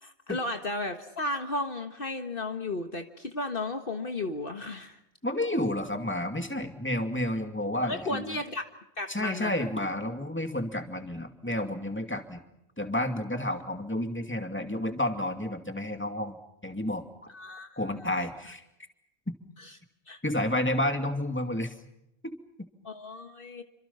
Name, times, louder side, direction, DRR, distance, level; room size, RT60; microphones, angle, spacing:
voice 1, 0.0-5.0 7.8-8.6 9.0-9.7 17.3-18.3 19.6-19.7 20.1-20.2 22.8-23.6, left 2 dB, 55° left, 6 dB, 1.7 m, -34 dB
voice 2, 5.2-8.3 9.1-12.4 12.8-16.4 16.6-17.0 17.8-18.6 20.2-21.7 22.2-22.3, left 1 dB, 10° left, 5 dB, 2.5 m, -30 dB
28.5 x 26.0 x 5.8 m, 0.83 s
omnidirectional pair, 1.1 m